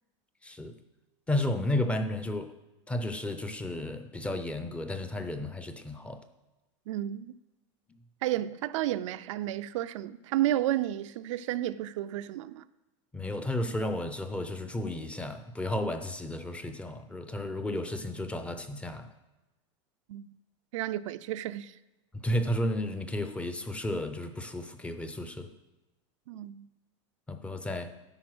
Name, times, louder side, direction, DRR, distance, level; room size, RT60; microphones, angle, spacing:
voice 1, 0.4-0.7 1.3-2.5 2.9-6.2 13.1-19.1 22.1-25.5 27.3-27.9, left 1 dB, 10° left, 0.5 m, -33 dB
voice 2, 6.9-7.3 8.2-12.6 20.1-20.3 20.7-21.7 26.3-26.7, right 13 dB, 85° right, 0.4 m, -32 dB
10.5 x 4.2 x 6.1 m
supercardioid pair, 145°, 16 cm